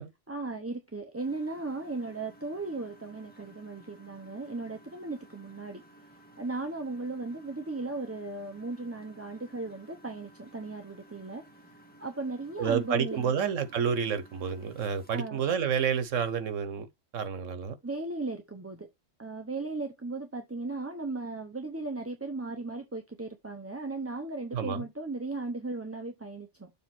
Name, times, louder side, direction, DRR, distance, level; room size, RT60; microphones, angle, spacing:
voice 1, 0.3-5.8 6.4-11.4 12.0-13.3 15.1-15.4 17.8-18.9 19.2-26.7, right 3 dB, 15° right, 0.7 m, -36 dB
Engine, 1.2-15.3, right 1 dB, 5° left, 1.9 m, -56 dB
voice 2, 12.6-16.9 17.1-17.7 24.5-24.8, right 7 dB, 80° right, 1.4 m, -29 dB
7.1 x 3.4 x 5.9 m
omnidirectional pair, 1.3 m